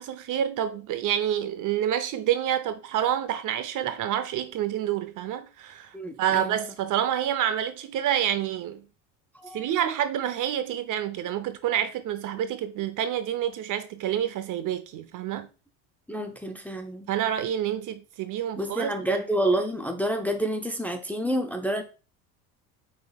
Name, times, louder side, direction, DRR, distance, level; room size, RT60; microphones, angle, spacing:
voice 1, 0.0-8.9 9.5-15.5 17.1-18.9, right 10 dB, 45° right, 0.6 m, -28 dB
voice 2, 5.9-6.6 9.3-9.7 16.1-17.1 18.6-21.8, right 1 dB, 5° left, 0.5 m, -28 dB
4.7 x 4.0 x 2.3 m
supercardioid pair, 90°, 43 cm